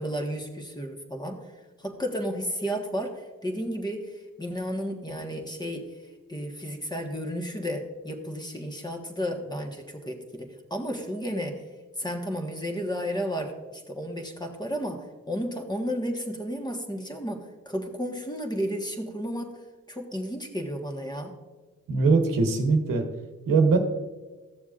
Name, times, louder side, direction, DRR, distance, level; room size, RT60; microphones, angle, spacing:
voice 1, 0.0-1.4 1.8-3.1 3.4-5.8 6.3-11.6 12.0-19.6 19.9-21.3, equal, 15° left, 3 dB, 1.5 m, -32 dB
voice 2, 21.9-23.0 23.5-23.8, right 4 dB, 90° right, 4 dB, 1.0 m, -21 dB
14.0 x 6.9 x 2.5 m, 1.3 s
supercardioid pair, 40°, 32 cm